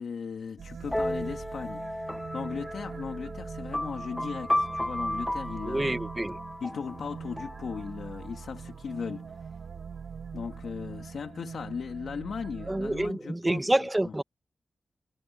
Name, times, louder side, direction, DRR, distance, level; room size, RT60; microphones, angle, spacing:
voice 1, 0.0-2.1 2.3-6.0 6.6-9.5 10.3-14.1, left 6 dB, 90° left, 2.9 m, -37 dB
sound 1, 0.6-13.1, right 6 dB, 80° right, 7.2 m, -42 dB
sound 2, 0.9-8.5, left 1 dB, 10° left, 0.9 m, -34 dB
voice 2, 5.7-6.4 12.7-14.2, right 1 dB, 15° right, 1.3 m, -27 dB
wide cardioid pair, 135°, 0 cm